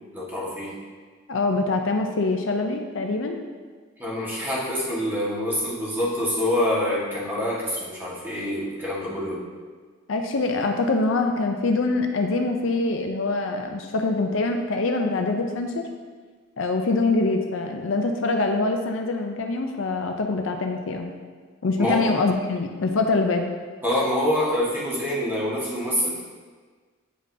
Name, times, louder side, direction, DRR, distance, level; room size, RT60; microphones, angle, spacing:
voice 1, 0.1-0.8 4.0-9.4 21.8-22.1 23.8-26.2, left 1 dB, 10° right, -7 dB, 1.5 m, -26 dB
voice 2, 1.3-3.4 10.1-15.8 16.6-21.1 21.6-23.5, left 3 dB, 65° left, 4 dB, 0.5 m, -24 dB
8.7 x 5.2 x 2.7 m, 1.5 s
head